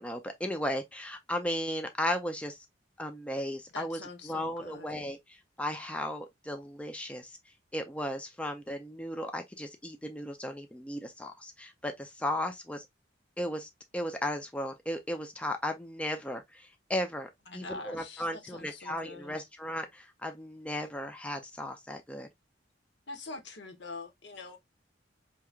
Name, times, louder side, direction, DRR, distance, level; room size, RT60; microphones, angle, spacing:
voice 1, 0.0-2.6 3.0-7.4 7.7-12.8 13.4-22.3, left 1 dB, 5° left, 0.4 m, -35 dB
voice 2, 3.7-4.9 17.5-19.4 23.1-24.6, left 3 dB, 65° left, 0.9 m, -44 dB
4.6 x 2.8 x 2.3 m
head